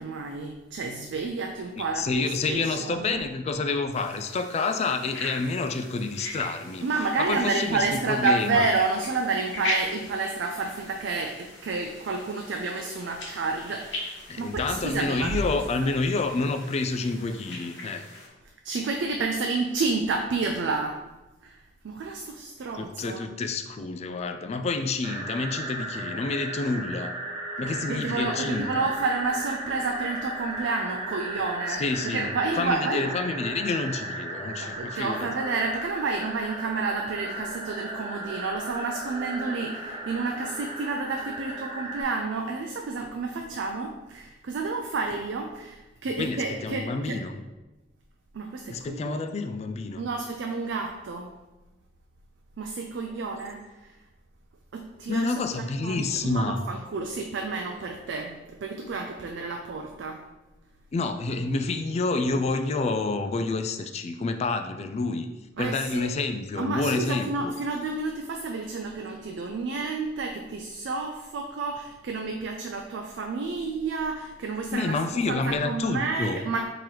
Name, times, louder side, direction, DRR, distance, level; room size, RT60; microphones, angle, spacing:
voice 1, 0.0-3.2 6.8-15.6 18.6-21.0 21.4-21.6 21.8-23.2 27.6-33.1 34.6-47.2 48.3-49.2 50.0-51.3 52.6-53.9 54.7-60.2 65.6-66.1 66.6-75.0 75.3-76.6, right 3 dB, 75° right, 3 dB, 0.4 m, -30 dB
voice 2, 1.8-6.8 7.2-8.7 14.3-18.1 22.7-27.2 27.6-28.9 31.7-32.3 32.6-35.3 46.2-47.4 48.7-50.0 55.1-56.6 60.9-65.3 65.6-67.5 74.7-76.4, left 3 dB, 35° left, 7 dB, 0.3 m, -28 dB
sound 1, 3.9-18.3, left 1 dB, 75° left, 1.1 m, -39 dB
sound 2, 25.0-42.0, right 1 dB, 30° right, 0.7 m, -35 dB
3.8 x 3.0 x 4.6 m, 1.1 s
head